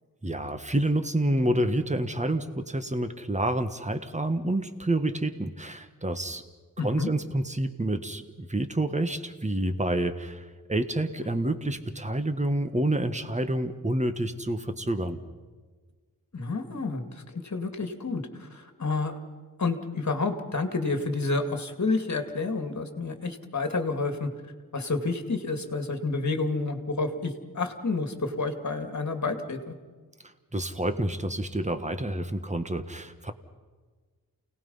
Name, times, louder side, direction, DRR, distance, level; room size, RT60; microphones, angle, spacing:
voice 1, 0.2-6.4 6.8-15.2 30.5-33.3, right 1 dB, 20° right, 9 dB, 1.5 m, -28 dB
voice 2, 6.8-7.1 16.3-19.2 19.6-24.3 24.7-29.7, left 3 dB, 50° left, 6 dB, 2.3 m, -29 dB
29.0 x 18.5 x 5.6 m, 1.4 s
wide cardioid pair, 75°, 36 cm